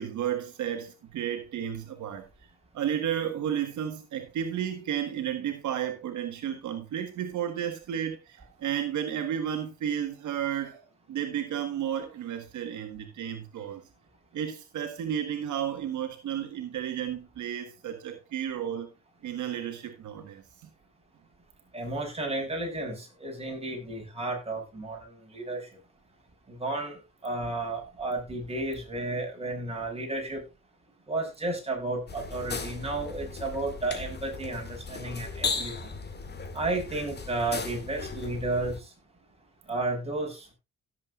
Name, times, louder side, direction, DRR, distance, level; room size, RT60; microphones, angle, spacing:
voice 1, 0.0-2.3 2.7-13.8 14.3-18.9 19.2-20.7, right 9 dB, 75° right, 1.5 m, -32 dB
voice 2, 21.7-25.7 26.5-30.4 31.1-35.9 36.5-38.9 39.7-40.5, right 2 dB, 20° right, 5.8 m, -32 dB
sound 1, 32.1-38.8, left 4 dB, 35° left, 2.1 m, -37 dB
17.0 x 7.7 x 2.4 m
cardioid pair, 90°, 30 cm